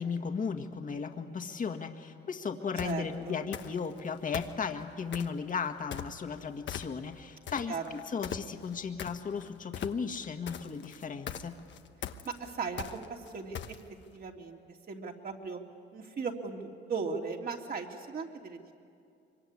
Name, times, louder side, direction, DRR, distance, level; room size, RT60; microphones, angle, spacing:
voice 1, 0.0-11.6, left 5 dB, 40° left, 5 dB, 1.8 m, -35 dB
sound 1, 2.8-3.0 3.5-4.0 4.3-5.4 5.9-6.4 6.7-7.2 7.5-14.0, left 9 dB, 65° left, 1.2 m, -40 dB
voice 2, 2.8-3.4 7.7-7.8 12.2-13.8 14.1-14.6 14.9-15.6 15.9-18.7, right 5 dB, 50° right, 1 dB, 3.1 m, -37 dB
24.5 x 23.5 x 9.9 m, 2.4 s
cardioid pair, 90°, 20 cm